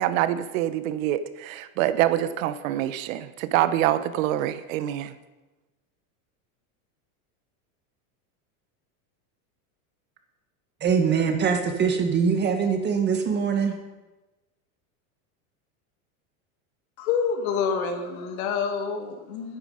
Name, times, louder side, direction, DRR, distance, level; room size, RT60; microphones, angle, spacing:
voice 1, 0.0-5.1, right 12 dB, 70° right, 13 dB, 1.0 m, -25 dB
voice 2, 10.8-13.7, right 6 dB, 25° right, 5 dB, 1.6 m, -23 dB
voice 3, 17.0-19.6, left 6 dB, 80° left, 5 dB, 2.1 m, -27 dB
13.5 x 9.9 x 5.0 m, 1.1 s
supercardioid pair, 145°, 42 cm